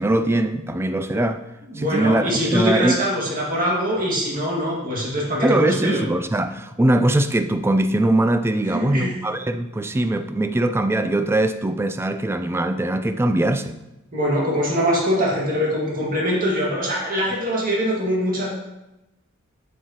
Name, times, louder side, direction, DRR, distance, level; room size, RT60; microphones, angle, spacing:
voice 1, 0.0-1.4 1.8-3.0 5.4-13.7, right 1 dB, 10° right, 9 dB, 0.3 m, -21 dB
voice 2, 1.6-6.0 8.7-9.1 14.1-18.5, equal, 40° right, -4 dB, 1.9 m, -23 dB
8.1 x 7.3 x 2.9 m, 0.95 s
head